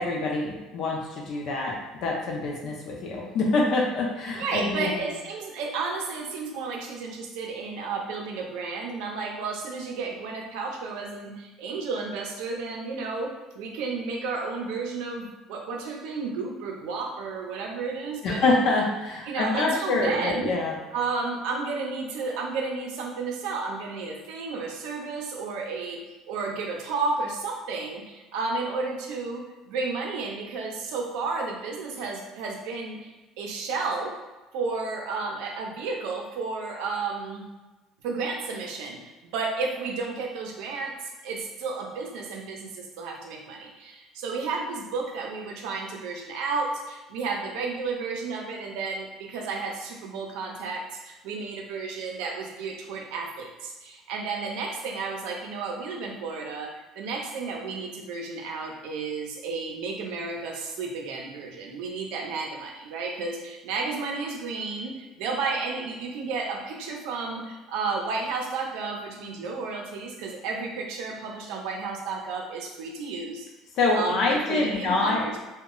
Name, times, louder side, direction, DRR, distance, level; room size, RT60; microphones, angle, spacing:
voice 1, 0.0-1.7 2.0-5.0 18.2-20.8 73.8-75.4, left 3 dB, 55° left, -1 dB, 0.6 m, -26 dB
voice 2, 4.3-18.4 19.3-20.5 20.9-34.1 34.5-37.5 38.0-73.5 73.9-75.3, right 4 dB, 85° right, 1 dB, 0.5 m, -32 dB
2.2 x 2.0 x 3.7 m, 1.2 s
cardioid pair, 155°, 0 cm